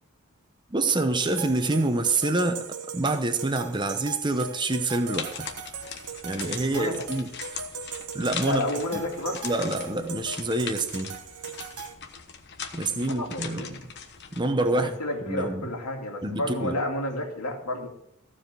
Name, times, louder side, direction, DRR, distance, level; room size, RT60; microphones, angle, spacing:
voice 1, 0.7-2.6 2.9-5.5 6.2-7.3 8.1-8.7 8.9-9.0 9.4-11.2 12.7-13.6 14.3-14.9 15.3-15.7 16.2-16.8, right 2 dB, 20° right, 7 dB, 0.9 m, -26 dB
sound 1, 1.2-11.9, right 5 dB, 90° right, 1.0 m, -39 dB
sound 2, 5.0-14.4, left 6 dB, 50° left, 1.2 m, -40 dB
voice 2, 6.6-7.0 8.4-9.4 12.9-13.9 14.7-17.9, left 1 dB, 85° left, 1 dB, 2.6 m, -31 dB
14.5 x 5.0 x 7.6 m, 0.76 s
head